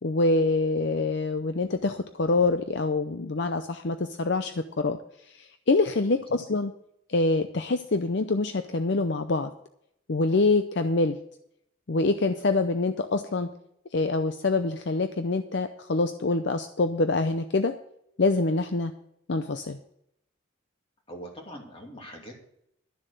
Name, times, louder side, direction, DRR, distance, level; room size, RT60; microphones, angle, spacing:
voice 1, 0.0-5.0 5.3-6.7 7.1-9.5 10.1-11.2 11.9-13.5 13.9-17.8 18.2-18.9 19.3-19.8, left 3 dB, 55° left, 8 dB, 0.6 m, -25 dB
voice 2, 21.1-22.4, equal, 25° left, 0 dB, 2.7 m, -42 dB
12.0 x 7.4 x 6.7 m, 0.75 s
head